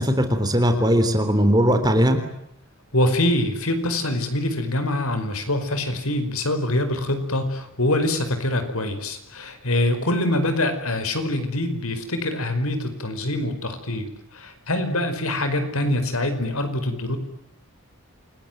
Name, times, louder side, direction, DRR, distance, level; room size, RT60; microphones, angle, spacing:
voice 1, 0.0-2.2, equal, 20° right, 7 dB, 3.6 m, -19 dB
voice 2, 2.9-17.2, left 1 dB, 85° left, 8 dB, 5.1 m, -24 dB
28.5 x 20.5 x 9.3 m, 0.80 s
head